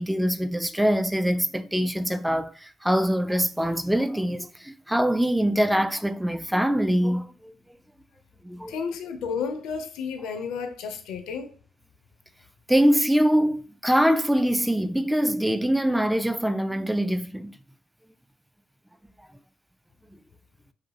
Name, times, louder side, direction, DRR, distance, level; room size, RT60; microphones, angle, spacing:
voice 1, 0.0-7.5 8.4-8.8 12.7-17.6, equal, 5° right, 0.3 m, -23 dB
voice 2, 8.7-11.5, left 6 dB, 75° left, 0.4 m, -32 dB
2.5 x 2.4 x 2.7 m
hypercardioid pair, 50°, 0 cm